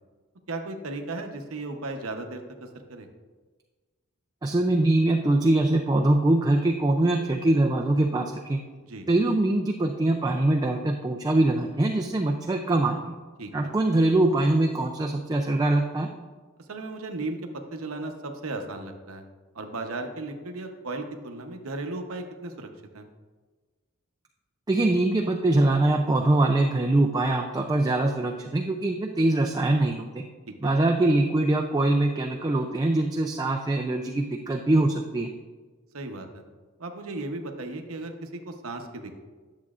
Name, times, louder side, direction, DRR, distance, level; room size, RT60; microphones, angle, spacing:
voice 1, 0.5-3.1 8.9-9.1 13.4-13.7 16.7-19.2 19.5-22.7 22.9-23.0 30.6-30.7 35.9-36.4 36.8-39.1, right 2 dB, 85° right, 5 dB, 0.9 m, -35 dB
voice 2, 4.4-8.6 9.1-13.1 13.5-16.1 24.7-30.2 30.6-35.3, right 2 dB, 20° right, 3 dB, 0.4 m, -23 dB
10.5 x 7.4 x 2.4 m, 1.4 s
head